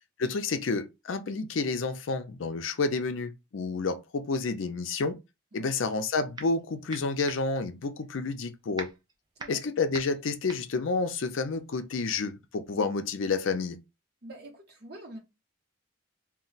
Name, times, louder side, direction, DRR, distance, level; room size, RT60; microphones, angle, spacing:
voice 1, 0.2-5.2 5.5-8.9 9.5-13.8, left 4 dB, 75° left, 0.5 m, -30 dB
sound 1, 5.9-6.6 6.9-11.9, right 3 dB, 20° right, 0.4 m, -43 dB
voice 2, 14.2-15.2, right 1 dB, 50° right, 1.0 m, -45 dB
2.3 x 2.1 x 3.9 m
head